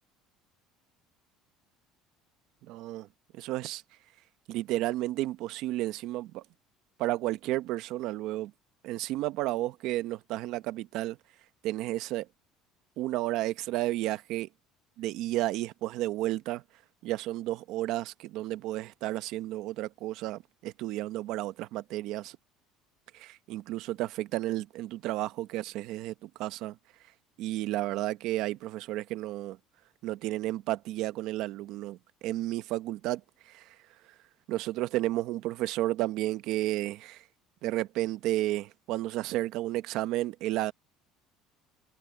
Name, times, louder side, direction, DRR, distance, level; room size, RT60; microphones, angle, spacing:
voice 1, 2.6-3.1 3.3-3.8 4.5-6.4 7.0-8.5 8.8-11.2 11.6-12.3 13.0-14.5 15.0-16.6 17.0-22.4 23.1-26.8 27.4-29.6 30.0-33.8 34.5-37.2 37.6-40.7, right 16 dB, 60° right, 0.9 m, -32 dB
cardioid pair, 165°, 0 cm